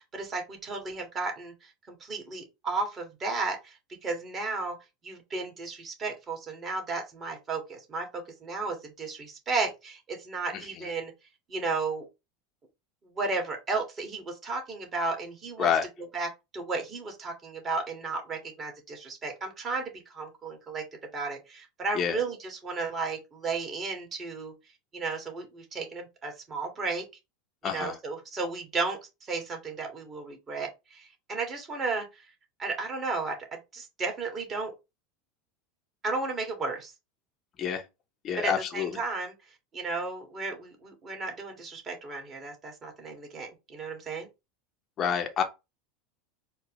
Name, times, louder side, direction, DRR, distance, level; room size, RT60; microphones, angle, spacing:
voice 1, 0.0-4.8 5.0-11.1 11.5-12.1 13.1-15.7 16.1-16.3 16.5-20.8 21.1-24.5 24.9-27.0 27.6-32.1 32.6-34.7 36.0-36.9 38.4-39.3 39.7-44.3, right 3 dB, 30° right, 1.7 m, -34 dB
voice 2, 10.5-10.9 15.6-15.9 21.9-22.2 27.6-28.0 37.6-37.8 38.2-39.0 45.0-45.4, left 7 dB, 40° left, 0.7 m, -28 dB
4.4 x 2.3 x 3.0 m
hypercardioid pair, 85°, 0 cm